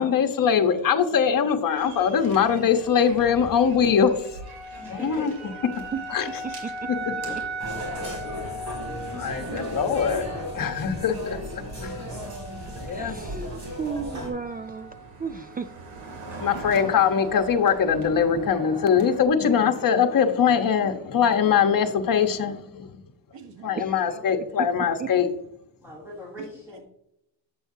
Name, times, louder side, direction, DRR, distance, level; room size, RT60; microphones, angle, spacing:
voice 1, 0.0-4.1 4.9-5.3 6.1-6.3 6.9-7.1 9.1-10.3 10.5-12.1 12.8-13.2 16.4-22.9 23.6-25.3, left 7 dB, 45° left, 1.2 m, -22 dB
sound 1, 1.8-19.2, right 1 dB, 90° right, 2.8 m, -39 dB
voice 2, 4.8-5.8 7.2-7.4 16.3-16.4 23.7-24.3 25.8-26.8, left 1 dB, 5° right, 2.8 m, -41 dB
sound 2, 7.6-14.3, equal, 40° right, 3.1 m, -35 dB
voice 3, 7.9-8.7 9.5-9.7 16.5-17.0 23.3-23.8 26.7-26.8, right 7 dB, 70° right, 1.3 m, -46 dB
voice 4, 12.9-14.9 15.2-15.7 23.8-23.9 24.6-24.7 25.0-25.1, right 5 dB, 20° right, 0.3 m, -33 dB
8.0 x 7.7 x 2.8 m
cardioid pair, 105°, 45 cm